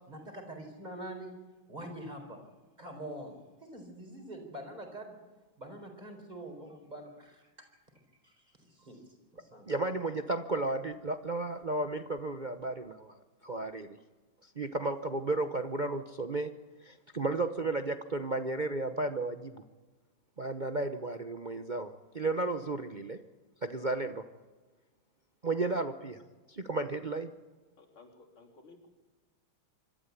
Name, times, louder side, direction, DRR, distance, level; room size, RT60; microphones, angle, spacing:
voice 1, 0.1-1.3 1.7-2.4 2.8-5.2 5.6-7.5 8.2-9.0 9.3-9.7, right 1 dB, 20° right, 4 dB, 4.6 m, -45 dB
voice 2, 9.7-13.1 13.4-14.0 14.6-16.5 16.8-19.6 20.4-23.2 23.6-24.3 25.4-26.2 26.5-27.3, right 2 dB, 50° right, 8 dB, 0.5 m, -33 dB
voice 3, 27.8-28.9, left 3 dB, 90° left, 0 dB, 4.3 m, -56 dB
25.5 x 13.0 x 8.4 m, 1.2 s
omnidirectional pair, 2.3 m